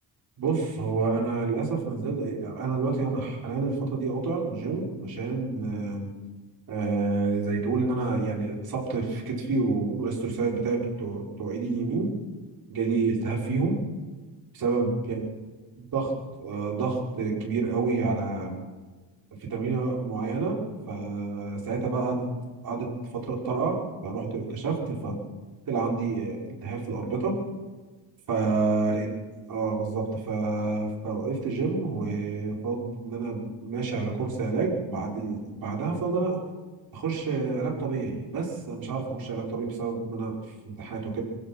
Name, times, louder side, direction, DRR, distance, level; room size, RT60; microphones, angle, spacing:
voice 1, 0.4-6.1 6.7-12.1 12.7-13.8 14.5-15.3 15.8-16.2 16.4-18.6 19.5-20.6 20.9-22.3 22.6-25.2 25.7-27.4 28.3-29.1 29.5-36.4 36.9-40.4 40.6-41.2, right 4 dB, 50° right, -2 dB, 5.8 m, -28 dB
26.0 x 16.0 x 6.2 m, 1.3 s
cardioid pair, 145°, 43 cm